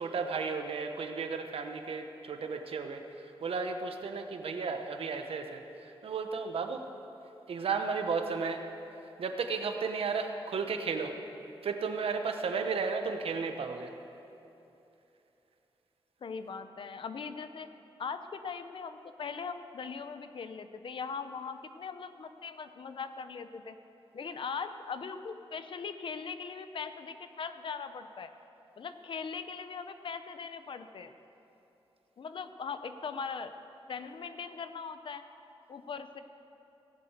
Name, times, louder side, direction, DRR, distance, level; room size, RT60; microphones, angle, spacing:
voice 1, 0.0-6.8 7.5-8.6 9.2-11.1 11.6-13.9, right 5 dB, 75° right, 6 dB, 1.1 m, -34 dB
voice 2, 16.2-17.7 18.0-23.8 24.1-28.3 28.8-31.1 32.2-33.5 33.9-35.2 35.7-36.2, left 5 dB, 60° left, 10 dB, 0.7 m, -40 dB
17.0 x 7.7 x 8.1 m, 2.9 s
wide cardioid pair, 155°, 10 cm